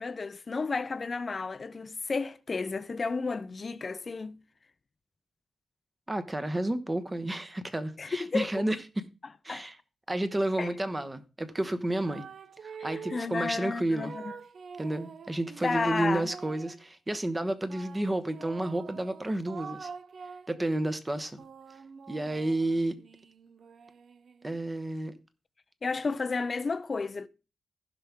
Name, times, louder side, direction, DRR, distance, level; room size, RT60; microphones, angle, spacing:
voice 1, 0.0-4.4 8.0-8.6 9.5-9.7 10.6-10.7 12.8-14.3 15.6-16.3 25.8-27.3, left 4 dB, 35° left, 0.5 m, -32 dB
voice 2, 6.1-8.8 9.4-9.8 10.1-12.3 12.6-14.1 14.8-19.9 20.5-21.4 22.1-22.9 24.4-25.1, right 1 dB, 15° right, 1.1 m, -31 dB
sound 1, 11.9-13.4 13.9-16.8 17.7-20.6 21.1-24.7, right 6 dB, 60° right, 0.5 m, -46 dB
15.5 x 5.8 x 3.6 m
wide cardioid pair, 110°, 0 cm